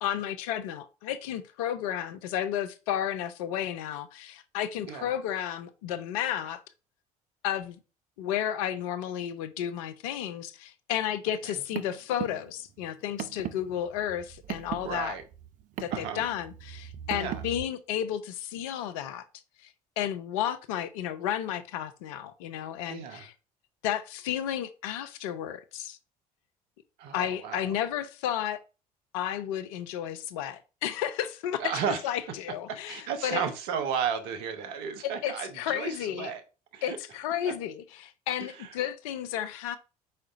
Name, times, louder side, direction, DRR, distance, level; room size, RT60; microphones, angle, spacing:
voice 1, 0.0-6.6 7.4-7.8 8.2-15.2 15.8-19.2 19.6-23.3 23.8-26.0 27.1-28.6 29.1-33.4 35.0-36.3 36.8-39.8, left 10 dB, 65° left, 0.5 m, -32 dB
Car, 11.4-17.6, right 11 dB, 40° right, 0.4 m, -39 dB
voice 2, 14.8-15.2 15.9-16.3 17.1-17.4 22.9-23.3 27.0-27.7 31.6-32.0 32.7-36.4 36.7-37.0 37.5-37.6 38.6-38.7, right 7 dB, 60° right, 0.9 m, -33 dB
4.8 x 4.3 x 2.5 m
figure-of-eight pair, 55°, 20 cm